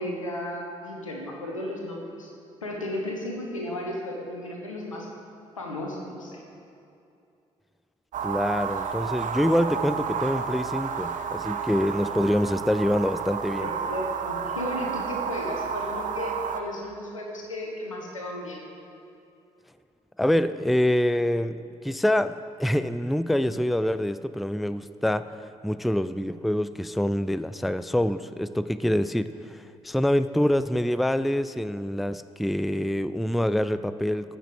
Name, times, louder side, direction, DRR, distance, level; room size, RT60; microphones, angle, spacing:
voice 1, 0.0-2.3 2.6-5.1 5.6-6.4 13.6-18.6, left 1 dB, 90° left, 0 dB, 1.0 m, -34 dB
sound 1, 8.1-16.6, right 7 dB, 50° right, 0.7 m, -31 dB
voice 2, 8.2-13.7 20.2-25.3 25.6-34.4, left 1 dB, ahead, 14 dB, 0.3 m, -25 dB
14.0 x 6.3 x 4.9 m, 2.6 s
figure-of-eight pair, 40°, 16 cm